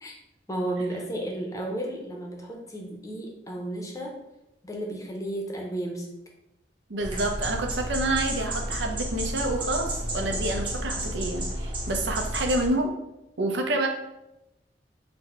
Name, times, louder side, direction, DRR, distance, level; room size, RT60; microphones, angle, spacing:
voice 1, 0.5-4.1 4.6-6.1, right 1 dB, 20° left, 0 dB, 0.6 m, -33 dB
voice 2, 6.9-12.9 13.4-13.9, right 2 dB, 80° right, 3 dB, 0.6 m, -28 dB
sound 1, 7.0-12.7, right 1 dB, 30° right, 0.9 m, -31 dB
4.1 x 2.2 x 4.2 m, 0.91 s
head